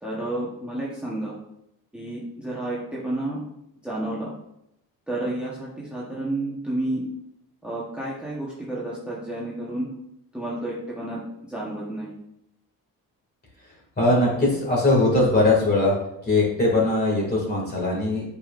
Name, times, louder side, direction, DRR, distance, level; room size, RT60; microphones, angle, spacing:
voice 1, 0.0-1.3 1.9-3.4 3.8-4.3 5.1-7.0 7.6-9.9 10.3-11.2 11.5-12.1, right 1 dB, 5° right, -7 dB, 1.1 m, -30 dB
voice 2, 14.0-15.9 16.2-18.2, left 2 dB, 25° left, -3 dB, 2.4 m, -20 dB
8.4 x 5.3 x 2.5 m, 0.81 s
cardioid pair, 160°, 37 cm